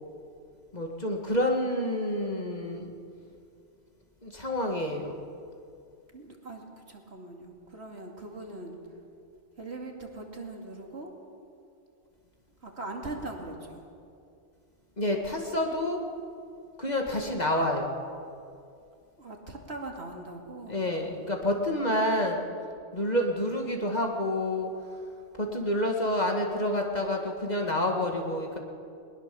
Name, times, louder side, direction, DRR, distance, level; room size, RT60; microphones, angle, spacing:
voice 1, 0.7-2.9 4.2-5.1 15.0-16.0 16.8-18.0 20.7-22.4 22.9-24.7 25.4-28.6, left 1 dB, 35° left, 2 dB, 2.0 m, -28 dB
voice 2, 6.1-8.8 9.6-11.1 12.6-13.8 19.2-20.8, right 2 dB, 60° right, 1 dB, 2.7 m, -41 dB
20.5 x 20.0 x 6.9 m, 2.5 s
omnidirectional pair, 1.2 m